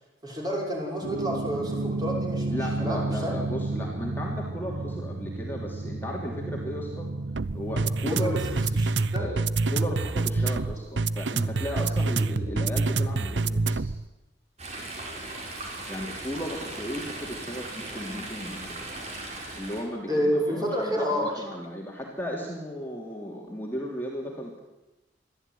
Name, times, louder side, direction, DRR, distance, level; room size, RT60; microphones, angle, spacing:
voice 1, 0.2-3.4 8.2-9.3 20.1-21.4, equal, 20° right, -2 dB, 5.9 m, -29 dB
sound 1, 1.0-14.1, right 3 dB, 75° right, 0.7 m, -28 dB
voice 2, 2.5-7.1 7.5-8.5 9.2-13.9 15.9-18.8 19.5-24.6, equal, 10° left, -2 dB, 3.0 m, -35 dB
Chatter / Stream, 14.6-19.8, right 2 dB, 35° right, 5.1 m, -38 dB
22.5 x 14.0 x 9.5 m, 1.0 s
head